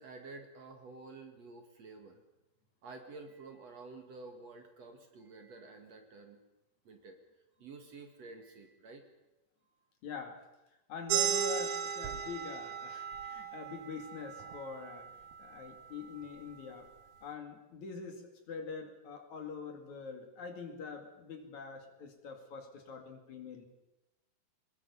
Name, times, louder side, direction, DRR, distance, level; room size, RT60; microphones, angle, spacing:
voice 1, 0.0-2.2 2.8-6.4 6.8-7.2 7.6-9.0 9.7-9.8, right 3 dB, 50° right, 4 dB, 2.7 m, -50 dB
voice 2, 10.0-10.4 10.9-15.1 15.4-16.9 17.2-23.6, left 5 dB, 55° left, 4 dB, 3.4 m, -44 dB
sound 1, 11.1-16.3, right 8 dB, 70° right, 2.5 m, -36 dB
22.0 x 20.5 x 7.0 m, 0.98 s
omnidirectional pair, 4.2 m